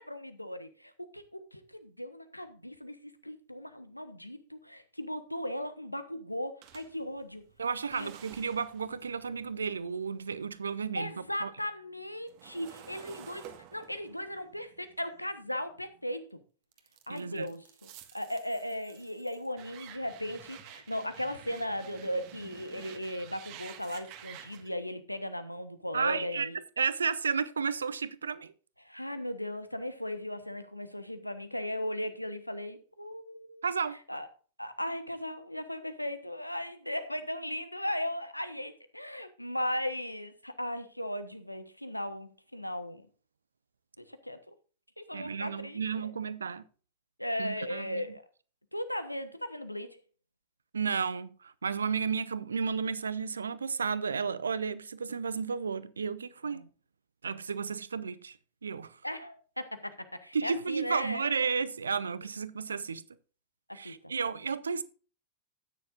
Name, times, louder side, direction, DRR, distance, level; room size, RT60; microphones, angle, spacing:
voice 1, 0.0-7.4 7.9-8.1 10.9-16.4 17.1-17.9 18.1-26.6 28.8-33.7 34.1-34.3 34.6-43.1 44.0-44.5 45.0-46.1 47.2-48.3 48.7-50.0 56.5-56.7 59.0-61.3 63.7-64.1, left 1 dB, 90° left, 1.0 m, -37 dB
sound 1, 6.6-10.9 11.2-16.1 16.7-24.7, right 10 dB, 45° right, 1.5 m, -51 dB
voice 2, 7.6-11.1 11.4-11.5 17.1-17.5 25.9-26.5 26.8-28.5 33.6-34.0 45.1-46.6 47.4-48.1 50.7-56.6 57.2-58.4 58.6-59.0 60.3-63.0 63.7-64.8, right 5 dB, 75° right, 0.7 m, -32 dB
13.0 x 9.6 x 2.5 m
figure-of-eight pair, 90°, 0 cm